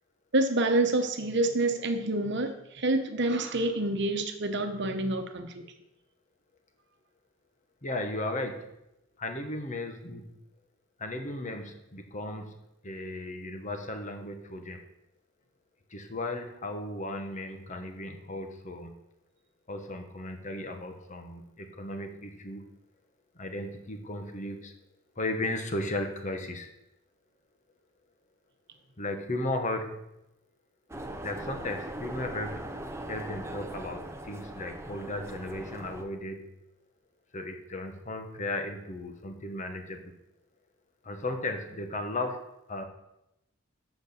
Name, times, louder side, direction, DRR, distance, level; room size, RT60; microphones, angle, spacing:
voice 1, 0.3-5.6, right 2 dB, 60° right, 7 dB, 1.0 m, -27 dB
voice 2, 7.8-8.6 9.2-10.3 11.0-12.5 12.8-14.8 15.9-18.9 19.7-22.7 23.4-24.7 25.2-26.7 29.0-30.0 31.2-32.7 33.1-36.4 37.3-40.1 41.0-42.4 42.7-42.8, left 2 dB, 35° left, 5 dB, 1.2 m, -35 dB
sound 1, 30.9-36.0, right 1 dB, 15° right, 0.7 m, -40 dB
8.1 x 6.1 x 6.9 m, 0.85 s
head